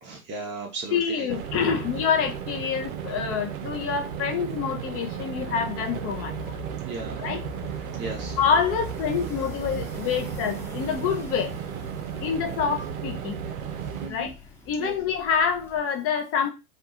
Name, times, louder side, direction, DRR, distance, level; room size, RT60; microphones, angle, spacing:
voice 1, 0.0-1.3 6.8-7.2 8.0-8.4 14.0-14.3 14.8-14.9, right 3 dB, 25° right, 0.7 m, -35 dB
voice 2, 0.9-6.6 7.2-7.4 8.4-11.6 12.2-13.4 14.1-14.3 14.7-16.5, left 7 dB, 35° left, 0.6 m, -27 dB
sound 1, 1.3-14.1, right 8 dB, 75° right, 0.6 m, -34 dB
sound 2, 5.4-15.8, left 2 dB, 5° left, 0.9 m, -44 dB
2.4 x 2.3 x 2.8 m
hypercardioid pair, 95°, 43 cm